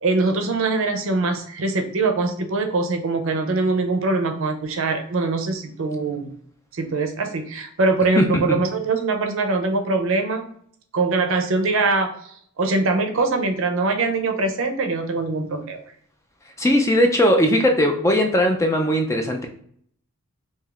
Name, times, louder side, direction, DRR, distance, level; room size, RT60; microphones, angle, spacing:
voice 1, 0.0-6.3 6.7-10.4 10.9-15.8, right 3 dB, 60° right, 5 dB, 0.5 m, -23 dB
voice 2, 8.2-8.6 16.6-19.5, equal, 15° left, 2 dB, 0.3 m, -19 dB
4.8 x 2.7 x 2.4 m, 0.63 s
head